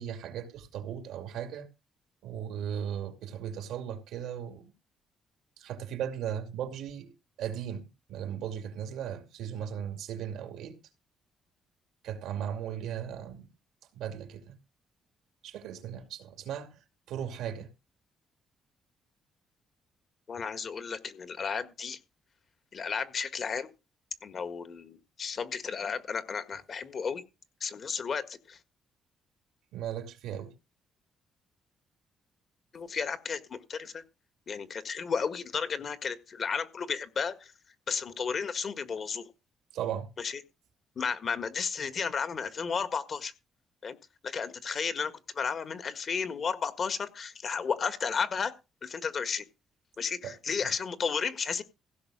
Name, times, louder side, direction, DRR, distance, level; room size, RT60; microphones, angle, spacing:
voice 1, 0.0-1.7 2.2-4.7 5.6-7.1 7.4-10.8 12.0-13.5 13.9-14.6 15.4-16.8 17.1-17.7 29.7-30.5 39.7-40.1 50.2-50.3 50.6-50.7, right 9 dB, 85° right, 2.4 m, -37 dB
voice 2, 20.3-22.0 22.7-23.7 24.2-27.2 27.6-28.6 32.7-34.0 34.5-37.5 37.9-39.3 40.2-40.4 41.0-43.3 43.8-44.0 44.2-48.5 48.8-49.5 50.0-51.6, left 6 dB, 50° left, 1.7 m, -33 dB
16.0 x 6.3 x 6.2 m
cardioid pair, 90°, 0 cm